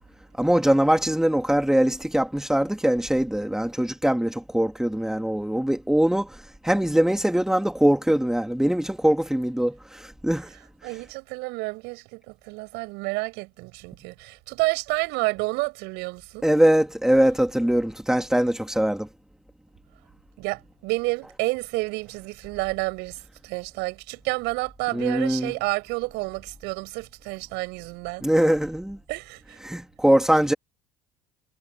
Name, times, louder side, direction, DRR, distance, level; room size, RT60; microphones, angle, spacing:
voice 1, 0.4-6.3 6.6-10.5 16.4-19.1 24.9-25.5 28.2-29.0 29.6-30.5, right 1 dB, 5° right, 3.4 m, -22 dB
voice 2, 10.8-16.5 20.4-28.2 29.1-29.6, right 25 dB, 65° right, 7.3 m, -30 dB
hypercardioid pair, 65°, 19 cm